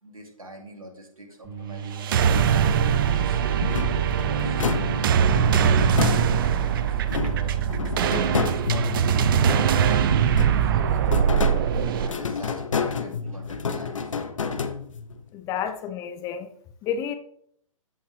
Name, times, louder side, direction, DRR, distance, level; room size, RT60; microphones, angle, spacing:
voice 1, 0.0-2.5 3.0-7.5 7.8-9.9 10.2-11.4 11.8-14.1, right 2 dB, 80° right, 2 dB, 2.7 m, -43 dB
sound 1, 1.4-9.2, right 7 dB, 20° right, 3.1 m, -43 dB
sound 2, 1.9-12.1, right 8 dB, 40° right, 0.6 m, -22 dB
sound 3, 3.6-6.6 7.1-9.9 10.3-15.2, left 5 dB, 65° left, 1.0 m, -29 dB
voice 2, 15.3-16.5 16.8-17.2, left 8 dB, 20° left, 8 dB, 0.6 m, -30 dB
14.0 x 5.5 x 3.3 m, 0.65 s
figure-of-eight pair, 120°, 18 cm